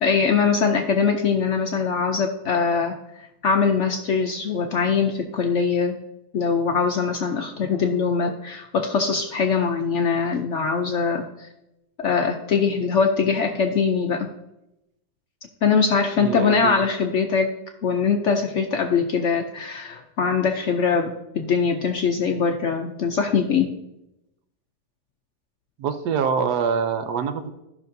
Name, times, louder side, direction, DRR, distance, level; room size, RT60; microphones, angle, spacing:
voice 1, 0.0-3.0 3.4-6.0 6.3-11.5 12.0-14.3 15.6-17.5 17.8-23.7, left 5 dB, 75° left, 4 dB, 0.6 m, -22 dB
voice 2, 16.2-16.7 25.8-27.5, right 6 dB, 70° right, 8 dB, 1.2 m, -25 dB
14.0 x 5.9 x 2.7 m, 0.89 s
omnidirectional pair, 1.9 m